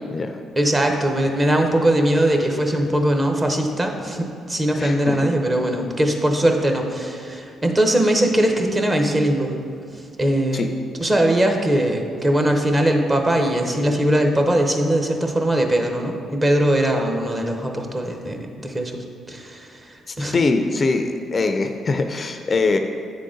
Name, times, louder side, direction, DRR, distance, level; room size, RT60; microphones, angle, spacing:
voice 1, 0.6-9.6 10.2-20.4, right 1 dB, 25° right, 3 dB, 0.8 m, -20 dB
voice 2, 4.8-5.2 10.5-10.7 20.1-22.8, left 3 dB, 35° left, 6 dB, 0.4 m, -22 dB
9.2 x 3.8 x 3.7 m, 2.5 s
cardioid pair, 90°, 0 cm